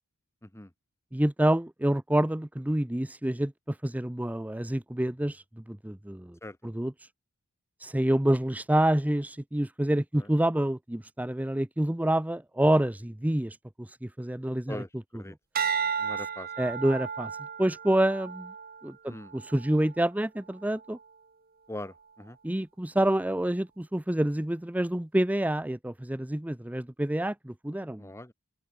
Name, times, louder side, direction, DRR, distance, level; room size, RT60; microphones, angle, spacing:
voice 1, 1.1-6.4 6.6-7.1 7.8-14.8 16.6-17.3 17.6-18.5 18.8-21.0 22.4-28.1, right 1 dB, 5° right, 0.5 m, -27 dB
voice 2, 14.7-15.3 16.0-16.8 19.1-19.3 21.7-22.4 28.0-28.3, left 1 dB, 10° left, 1.7 m, -42 dB
sound 1, 15.5-20.0 20.6-21.0, right 7 dB, 40° right, 1.9 m, -34 dB
open air
head